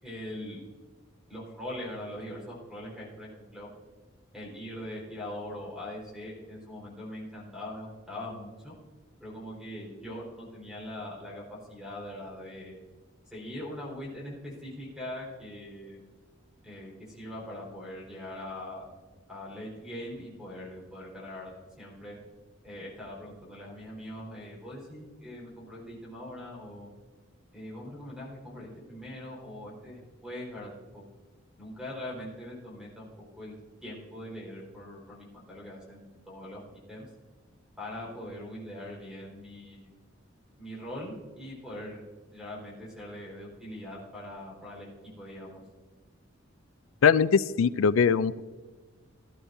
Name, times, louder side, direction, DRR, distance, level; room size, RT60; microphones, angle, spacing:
voice 1, 0.0-0.6 1.3-3.7 4.3-8.7 9.2-12.7 13.3-16.0 16.6-18.9 19.3-21.5 21.8-22.2 22.6-26.9 27.5-31.0 31.6-33.1 33.3-33.6 33.8-37.1 37.8-39.9 40.6-42.0 42.3-44.9 45.2-45.6, left 1 dB, 5° right, -5 dB, 4.4 m, -41 dB
voice 2, 47.0-48.4, left 6 dB, 90° left, 17 dB, 0.4 m, -22 dB
18.5 x 11.5 x 2.7 m, 1.3 s
head